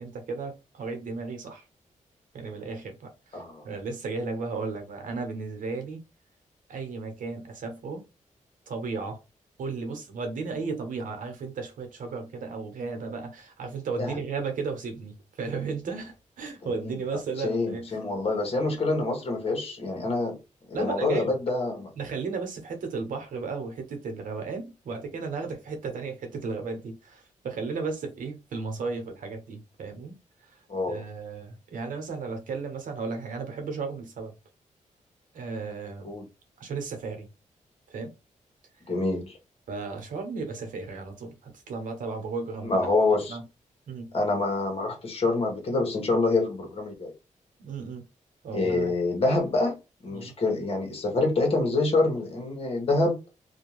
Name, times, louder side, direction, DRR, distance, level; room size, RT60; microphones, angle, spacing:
voice 1, 0.0-1.6 2.3-6.0 6.7-8.0 8.7-9.2 9.6-18.0 20.7-21.4 22.0-30.1 30.4-30.5 30.9-34.3 35.3-36.1 36.6-37.3 37.9-38.1 39.7-42.8 43.3-43.4 43.9-44.1 47.6-48.0 48.4-48.9 50.1-50.3, right 4 dB, 85° right, 0.8 m, -34 dB
voice 2, 3.3-3.7 14.0-14.2 16.6-16.9 17.4-20.4 20.7-21.9 30.7-31.0 36.0-36.2 38.9-39.4 42.6-43.4 44.1-47.1 48.5-49.8 50.0-53.2, left 2 dB, 45° left, 1.0 m, -26 dB
2.5 x 2.2 x 3.1 m
wide cardioid pair, 115°, 13 cm